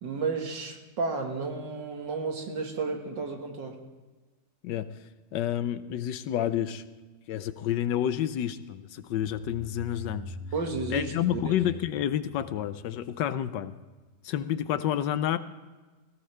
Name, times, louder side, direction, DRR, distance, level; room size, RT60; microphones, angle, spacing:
voice 1, 0.0-3.8 10.5-11.5, right 4 dB, 80° right, 3 dB, 2.5 m, -32 dB
voice 2, 4.6-4.9 5.3-6.8 7.3-10.3 10.9-13.7 14.2-15.4, left 11 dB, 85° left, 13 dB, 1.4 m, -29 dB
sound 1, 9.0-13.6, equal, 30° right, 4.5 m, -44 dB
18.5 x 17.0 x 3.4 m, 1.3 s
omnidirectional pair, 1.9 m